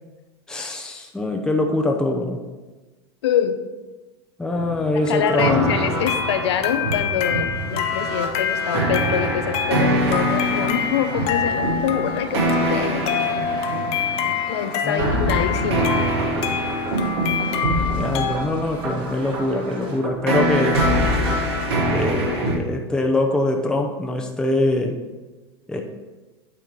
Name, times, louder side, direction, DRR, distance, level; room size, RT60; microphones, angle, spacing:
voice 1, 0.5-2.4 4.4-5.7 14.8-15.3 17.9-20.8 21.9-25.0 25.7-25.8, left 2 dB, 5° left, 1 dB, 0.8 m, -23 dB
voice 2, 3.2-3.6 4.9-13.5 14.5-15.9, left 8 dB, 75° left, 8 dB, 0.7 m, -25 dB
sound 1, 4.5-14.3 15.0-22.6, right 1 dB, 70° right, 2.4 m, -24 dB
sound 2, 6.0-18.4, left 8 dB, 45° left, 0.9 m, -27 dB
sound 3, 9.5-20.0, right 2 dB, 35° right, 2.0 m, -40 dB
9.3 x 3.5 x 6.0 m, 1.2 s
hypercardioid pair, 105°, 14 cm